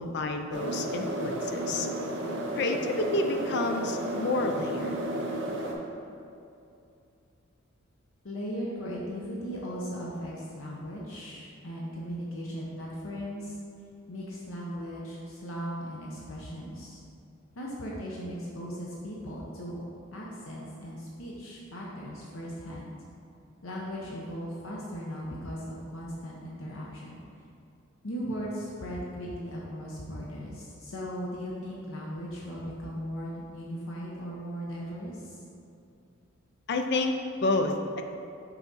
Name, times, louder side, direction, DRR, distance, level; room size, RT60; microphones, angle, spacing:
voice 1, 0.0-1.9 2.5-4.9 36.7-37.2 37.4-38.0, left 2 dB, 55° left, 5 dB, 0.5 m, -29 dB
sound 1, 0.5-5.7, right 1 dB, 60° right, 0.7 m, -32 dB
voice 2, 8.2-13.6 14.1-17.0 17.6-19.8 20.1-22.9 23.6-27.1 28.0-35.4, equal, 80° left, -5 dB, 0.8 m, -37 dB
5.8 x 4.1 x 4.0 m, 2.6 s
head